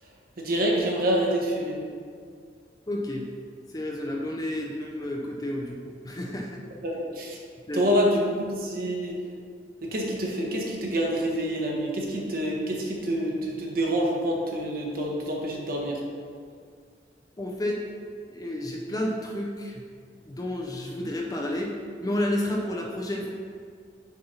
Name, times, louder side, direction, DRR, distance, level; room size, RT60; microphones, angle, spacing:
voice 1, 0.4-1.8 6.8-7.4 7.7-9.2 9.8-16.0, equal, 55° right, -2 dB, 1.2 m, -27 dB
voice 2, 2.9-3.3 3.7-6.6 7.7-7.9 17.4-17.8 18.3-19.8 20.2-21.7 22.0-23.3, left 1 dB, 20° left, -1 dB, 0.5 m, -31 dB
6.6 x 4.3 x 5.6 m, 2.1 s
head